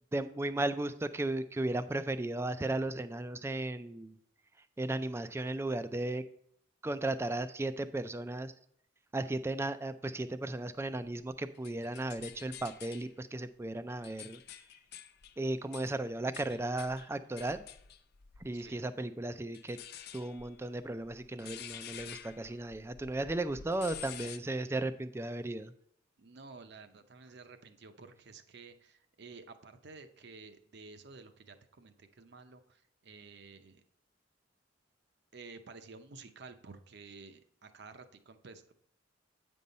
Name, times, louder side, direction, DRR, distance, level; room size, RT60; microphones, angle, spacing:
voice 1, 0.1-4.2 4.8-6.2 6.8-8.5 9.1-14.4 15.4-17.6 18.4-19.8 20.1-25.7, right 2 dB, 15° right, 12 dB, 0.3 m, -35 dB
sound 1, 11.0-13.1 13.7-18.8 19.5-24.4, left 9 dB, 55° left, 0.4 m, -49 dB
voice 2, 18.5-18.8 26.2-33.8 35.3-38.8, right 4 dB, 60° right, 9 dB, 0.6 m, -52 dB
8.5 x 5.4 x 4.1 m, 0.68 s
head